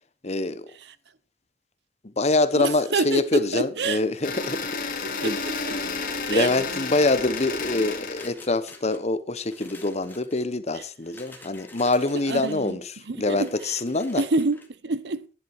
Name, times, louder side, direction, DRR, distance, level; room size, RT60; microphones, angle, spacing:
voice 1, 0.2-0.7 2.0-5.4 5.7-5.9 6.3-14.2, left 2 dB, 40° left, 1.0 m, -25 dB
voice 2, 2.5-4.0 5.1-5.8 6.3-6.5 10.7-10.8 12.1-12.8 13.0-13.8 14.1-15.3, right 3 dB, 75° right, 0.8 m, -28 dB
sound 1, 4.0-4.4 4.8-5.5 5.9-6.6 7.1-7.7 8.1-9.0 9.4-10.5 11.0-12.7 13.2-14.7, left 2 dB, 10° left, 2.1 m, -49 dB
sound 2, 4.2-8.3, left 4 dB, 55° left, 2.3 m, -31 dB
11.0 x 10.5 x 4.7 m
head